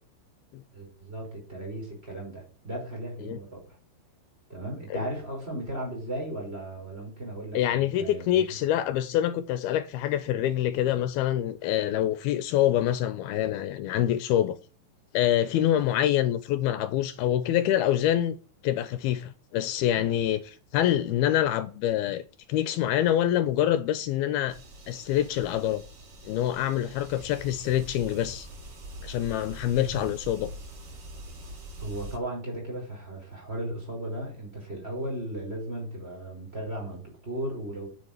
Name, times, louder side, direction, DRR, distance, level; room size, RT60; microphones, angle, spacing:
voice 1, 0.7-3.8 4.5-8.4 29.8-30.0 31.8-37.9, right 1 dB, 15° right, 5.7 m, -36 dB
voice 2, 7.5-14.6 15.1-18.4 18.6-22.2 22.5-24.6 24.9-25.8 26.3-28.5 29.0-30.5, left 12 dB, 80° left, 2.6 m, -26 dB
sound 1, 24.5-32.2, right 1 dB, 40° right, 3.0 m, -44 dB
9.6 x 7.8 x 8.9 m
omnidirectional pair, 4.5 m